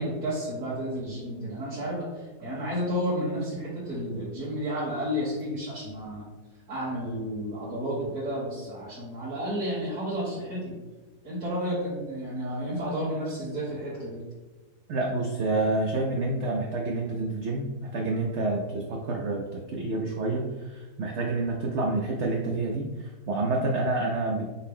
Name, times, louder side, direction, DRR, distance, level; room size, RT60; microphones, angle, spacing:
voice 1, 0.0-6.3 6.7-10.8 11.2-14.2, equal, 55° right, -10 dB, 1.8 m, -31 dB
voice 2, 14.9-24.5, right 2 dB, 90° right, 0 dB, 0.6 m, -28 dB
5.7 x 2.1 x 3.6 m, 1.2 s
omnidirectional pair, 1.8 m